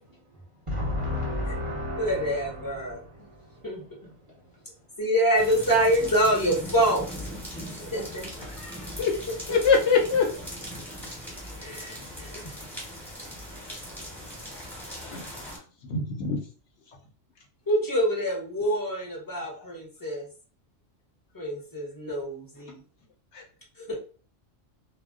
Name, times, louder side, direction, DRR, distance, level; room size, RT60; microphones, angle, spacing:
voice 1, 0.7-3.0, left 1 dB, 30° right, -5 dB, 0.8 m, -31 dB
voice 2, 2.0-3.0 3.6-4.1 5.0-7.3 7.7-8.3 11.6-12.3 17.7-20.3 21.3-22.8 23.8-24.0, right 1 dB, 20° left, -2 dB, 0.6 m, -26 dB
sound 1, 5.3-15.6, equal, ahead, 1.0 m, -39 dB
voice 3, 8.5-9.1 9.5-10.3 15.1-15.2 15.9-16.4, left 5 dB, 65° left, 1 dB, 0.9 m, -23 dB
2.2 x 2.1 x 3.6 m, 0.39 s
omnidirectional pair, 1.3 m